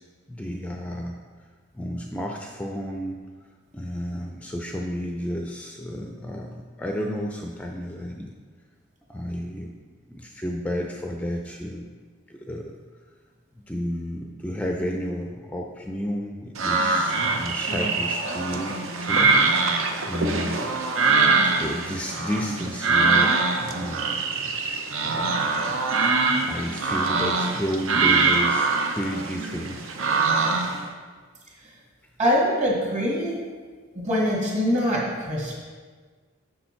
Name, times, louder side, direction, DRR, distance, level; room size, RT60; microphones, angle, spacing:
voice 1, 0.3-1.2 1.7-3.2 3.7-8.3 9.1-9.7 10.1-11.9 12.3-12.7 13.6-19.4 20.1-20.8 21.6-24.4 25.0-25.4 26.4-28.7 29.0-29.9, equal, 5° left, 1 dB, 0.4 m, -32 dB
sound 1, 16.6-30.8, right 4 dB, 75° right, 0.7 m, -23 dB
voice 2, 32.2-33.4 34.0-35.5, equal, 35° right, -3 dB, 1.9 m, -23 dB
6.9 x 6.3 x 4.4 m, 1.5 s
head